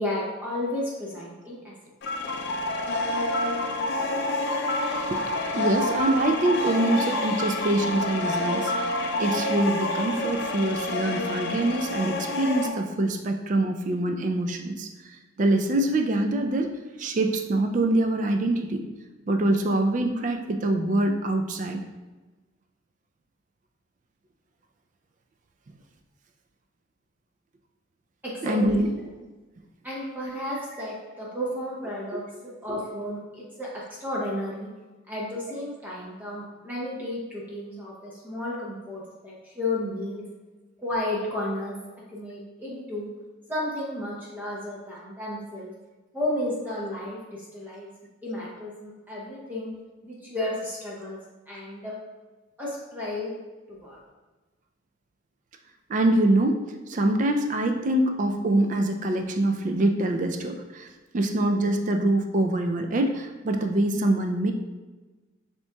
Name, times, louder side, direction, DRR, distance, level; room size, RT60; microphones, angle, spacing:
voice 1, 0.0-1.7 28.2-28.9 29.8-33.7 34.0-34.7 35.1-40.2 40.8-41.7 42.1-43.1 43.5-45.7 46.1-47.9 48.2-49.7 50.0-51.2 51.5-52.0 52.6-53.3 53.7-54.0, left 1 dB, 10° right, -6 dB, 0.7 m, -32 dB
sound 1, 2.0-12.7, left 2 dB, 55° left, 0.4 m, -28 dB
voice 2, 5.6-14.9 15.4-16.7 17.0-18.8 19.3-21.8 28.4-28.9 32.1-32.2 55.9-56.6 56.9-60.9 61.1-64.5, right 1 dB, 35° right, 5 dB, 0.3 m, -24 dB
6.9 x 2.9 x 2.3 m, 1.2 s
head